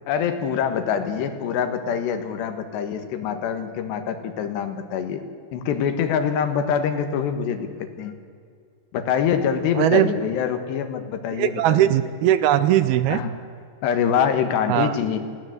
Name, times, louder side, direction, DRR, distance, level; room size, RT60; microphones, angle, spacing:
voice 1, 0.1-5.2 5.5-8.2 8.9-11.9 13.1-13.3 13.8-15.2, left 7 dB, 85° left, 8 dB, 3.6 m, -25 dB
voice 2, 9.7-10.1 11.4-13.2 14.7-15.0, right 12 dB, 80° right, 13 dB, 2.4 m, -19 dB
20.5 x 17.0 x 7.9 m, 2.3 s
omnidirectional pair, 4.8 m